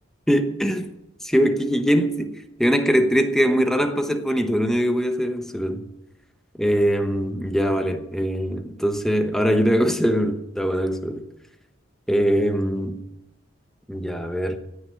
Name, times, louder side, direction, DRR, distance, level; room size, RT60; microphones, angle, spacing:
voice 1, 0.3-0.9 1.2-2.3 2.6-5.8 6.6-11.2 12.1-13.0 13.9-14.6, equal, ahead, 6 dB, 1.1 m, -22 dB
17.0 x 6.4 x 9.4 m, 0.91 s
head